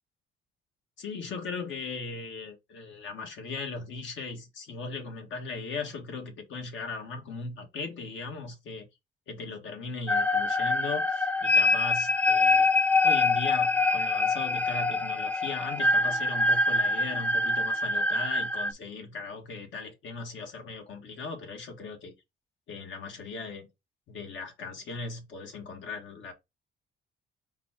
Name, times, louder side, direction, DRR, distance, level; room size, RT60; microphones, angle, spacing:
voice 1, 1.0-8.9 9.3-12.7 13.0-22.1 22.7-23.7 24.1-26.3, left 4 dB, 75° left, 1.5 m, -38 dB
sound 1, 10.1-18.7, left 3 dB, 5° left, 0.3 m, -25 dB
4.0 x 2.4 x 4.2 m
cardioid pair, 90°, 20 cm